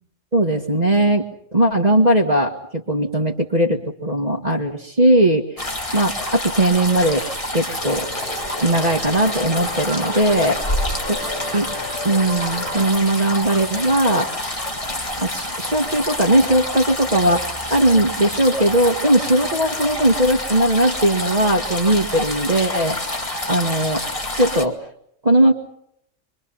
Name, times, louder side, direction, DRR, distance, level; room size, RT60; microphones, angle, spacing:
voice 1, 0.3-1.3 1.5-7.3 7.5-8.1 8.6-10.6 11.4-11.7 12.0-14.3 15.2-24.0 24.4-24.8 25.2-25.5, right 1 dB, 35° right, 0 dB, 2.0 m, -19 dB
sound 1, 5.6-24.6, left 1 dB, 25° left, 2.4 m, -28 dB
sound 2, 7.8-12.9, left 1 dB, 80° left, 6.8 m, -32 dB
26.5 x 23.5 x 5.7 m, 0.72 s
omnidirectional pair, 1.3 m